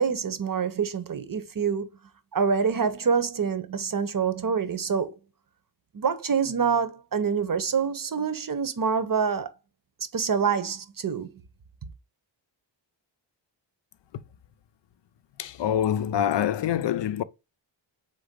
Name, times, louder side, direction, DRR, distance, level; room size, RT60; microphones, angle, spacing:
voice 1, 0.0-1.9 2.3-5.2 5.9-9.5 10.1-11.3, right 6 dB, 45° right, 0.8 m, -26 dB
voice 2, 15.4-17.2, left 10 dB, 65° left, 0.5 m, -25 dB
4.0 x 3.5 x 3.6 m
cardioid pair, 65°, 46 cm